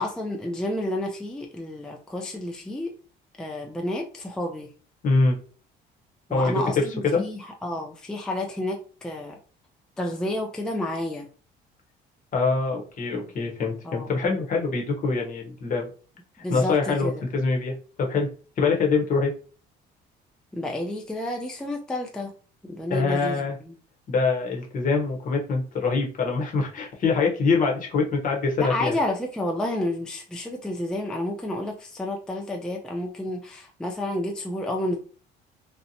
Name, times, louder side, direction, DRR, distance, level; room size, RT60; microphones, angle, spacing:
voice 1, 0.0-2.9 3.4-4.7 6.3-9.4 10.0-11.3 13.8-14.1 16.4-17.2 20.5-22.3 22.6-23.7 28.6-35.0, left 1 dB, 5° left, 1 dB, 0.3 m, -30 dB
voice 2, 5.0-5.4 6.3-6.6 7.0-7.2 12.3-15.9 16.5-18.3 18.6-19.3 22.9-23.6 24.1-29.0, left 4 dB, 45° left, 1 dB, 0.8 m, -24 dB
2.7 x 2.1 x 2.6 m, 0.39 s
cardioid pair, 105°, 20 cm